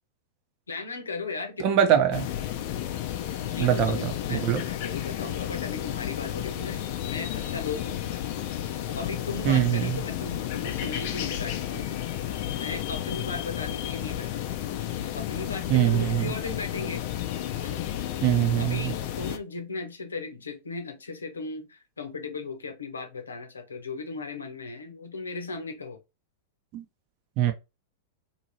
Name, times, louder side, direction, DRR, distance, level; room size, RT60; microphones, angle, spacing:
voice 1, 0.7-2.0 3.5-8.2 8.6-12.0 12.5-14.3 15.1-17.1 17.6-17.9 18.6-26.0, left 4 dB, 85° left, 0.8 m, -37 dB
voice 2, 1.6-2.2 3.6-4.6 9.4-10.0 15.7-16.3 18.2-18.9 26.7-26.8 27.4-27.5, right 10 dB, 45° right, 0.8 m, -23 dB
sound 1, 2.1-19.4, left 12 dB, 50° left, 0.5 m, -32 dB
2.8 x 2.7 x 2.9 m
hypercardioid pair, 100°, 0 cm